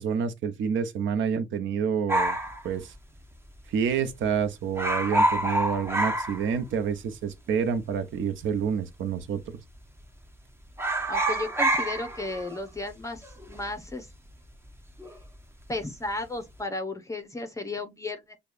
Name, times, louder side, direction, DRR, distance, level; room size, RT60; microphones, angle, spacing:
voice 1, 0.0-2.4 2.6-2.9 3.7-9.6, right 7 dB, 75° right, 0.8 m, -28 dB
sound 1, 2.1-3.6 3.8-3.9 4.2-4.4 4.7-7.0 7.3-7.4 8.2-8.8 9.1-9.4 9.7-10.4 10.7-15.3 15.6-16.0, right 1 dB, 10° right, 0.8 m, -28 dB
voice 2, 11.1-14.1 15.7-18.4, left 2 dB, 15° left, 0.8 m, -34 dB
6.6 x 2.3 x 2.5 m
cardioid pair, 90°, 20 cm